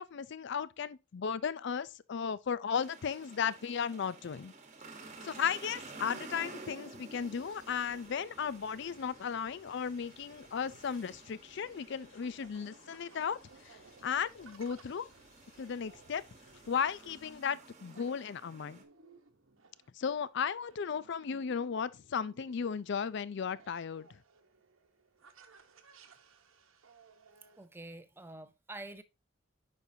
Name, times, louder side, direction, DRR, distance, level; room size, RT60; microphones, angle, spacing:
voice 1, 0.0-4.5 5.2-13.4 14.0-15.1 15.6-16.2 16.7-18.8 20.0-24.1, left 7 dB, 60° left, 0.4 m, -35 dB
sound 1, 2.8-18.8, right 3 dB, 35° right, 1.1 m, -52 dB
sound 2, 7.1-17.4, left 3 dB, 80° left, 1.6 m, -64 dB
sound 3, 11.0-27.6, right 4 dB, 85° right, 1.1 m, -61 dB
voice 2, 27.6-29.0, right 2 dB, 10° right, 0.5 m, -47 dB
9.1 x 5.4 x 2.7 m
head